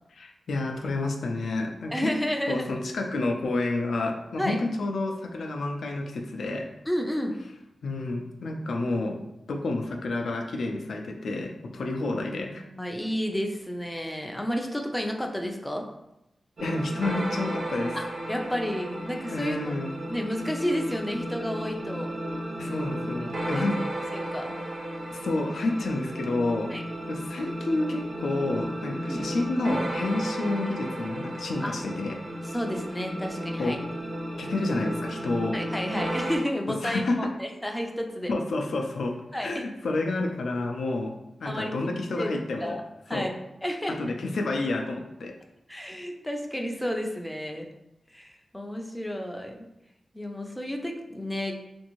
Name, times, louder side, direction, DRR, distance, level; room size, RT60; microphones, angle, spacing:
voice 1, 0.2-2.1 2.5-6.7 7.8-9.2 9.5-12.6 16.6-18.0 19.3-19.9 22.6-23.8 25.1-26.7 27.1-32.2 33.6-33.8 34.4-35.6 36.8-37.3 38.3-41.1 41.4-42.8 43.1-43.3 44.0-45.3, left 2 dB, 85° left, 3 dB, 0.3 m, -29 dB
voice 2, 1.9-2.7 4.4-4.6 6.9-7.4 12.5-15.8 17.9-19.7 20.1-22.1 23.2-23.9 24.1-24.5 26.7-26.8 29.1-29.3 31.6-31.8 32.5-33.8 35.5-38.3 39.3-39.6 41.4-42.8 43.1-43.3 43.6-44.1 45.7-47.7 48.1-49.7 50.1-51.5, equal, 5° left, 2 dB, 0.3 m, -31 dB
sound 1, 16.6-36.4, right 1 dB, 70° right, 0.7 m, -34 dB
2.6 x 2.6 x 2.9 m, 0.87 s
wide cardioid pair, 130°, 0 cm